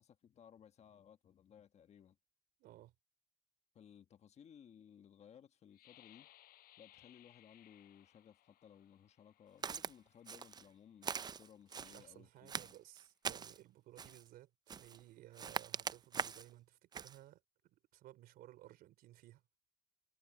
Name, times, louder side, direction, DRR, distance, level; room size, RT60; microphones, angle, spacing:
voice 1, 0.0-2.2 3.7-6.3 6.8-12.7, left 8 dB, 45° left, 1.3 m, -61 dB
voice 2, 2.6-2.9 11.7-19.4, right 15 dB, 75° right, 3.8 m, -58 dB
sound 1, 5.7-11.4 12.0-12.2 12.7-13.1, left 15 dB, 75° left, 4.8 m, -66 dB
Walk footsteps, 9.6-9.9 10.3-10.7 11.0-12.0 12.5-13.6 14.0-14.3 14.7-15.0 15.4-16.5 16.9-17.2, right 6 dB, 25° right, 0.4 m, -42 dB
cardioid pair, 115°, 16 cm